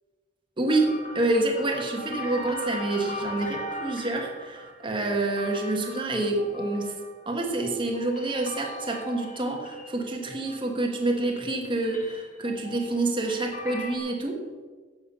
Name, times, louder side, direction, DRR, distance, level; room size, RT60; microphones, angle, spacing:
voice 1, 0.6-6.9 7.3-14.4, right 2 dB, 25° right, 1 dB, 1.5 m, -27 dB
sound 1, 0.7-10.9 11.2-14.0, equal, 45° left, 1.5 m, -40 dB
11.0 x 7.9 x 5.6 m, 1.4 s
head